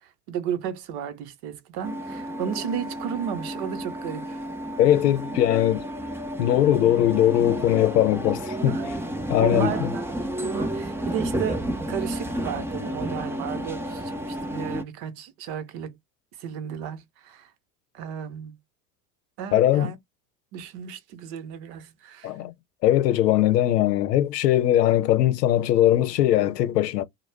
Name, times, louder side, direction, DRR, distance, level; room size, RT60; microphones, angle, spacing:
voice 1, 0.0-4.4 8.7-8.9 9.4-16.0 16.4-17.5 17.9-18.6 19.4-20.0 20.5-22.3, right 8 dB, 55° right, 0.9 m, -34 dB
sound 1, 1.8-14.8, right 1 dB, 5° right, 0.5 m, -31 dB
voice 2, 4.8-5.8 6.4-8.7 9.3-9.9 19.5-19.9 22.2-22.5 22.8-27.0, left 12 dB, 85° left, 0.6 m, -20 dB
2.3 x 2.1 x 3.3 m
hypercardioid pair, 85°, 47 cm